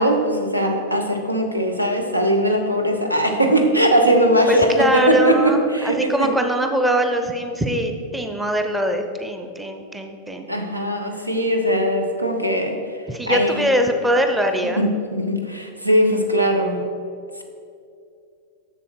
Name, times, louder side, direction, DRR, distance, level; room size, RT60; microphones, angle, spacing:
voice 1, 0.0-6.3 10.5-12.8 13.3-13.7 14.8-16.8, equal, 85° right, 3 dB, 0.8 m, -20 dB
voice 2, 4.5-10.5 13.1-14.8, right 1 dB, 5° right, 4 dB, 0.7 m, -22 dB
7.0 x 7.0 x 4.6 m, 2.4 s
figure-of-eight pair, 90°, 0 cm